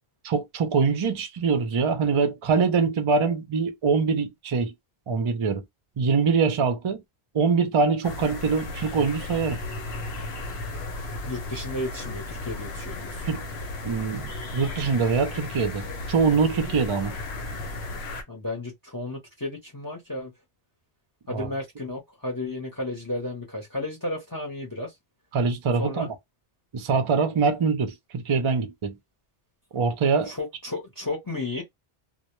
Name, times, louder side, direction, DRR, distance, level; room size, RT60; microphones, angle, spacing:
voice 1, 0.2-4.7 5.1-5.6 6.0-7.0 7.3-9.6 13.2-13.4 13.8-17.2 21.3-21.5 25.3-26.1 26.7-28.9 29.7-30.3, right 5 dB, 45° right, 0.4 m, -24 dB
sound 1, 8.0-18.2, left 2 dB, 85° left, 0.9 m, -35 dB
voice 2, 11.1-13.2 18.3-20.3 21.3-24.9 25.8-26.1 30.3-31.6, left 2 dB, 25° left, 0.6 m, -33 dB
2.1 x 2.1 x 2.9 m
omnidirectional pair, 1.0 m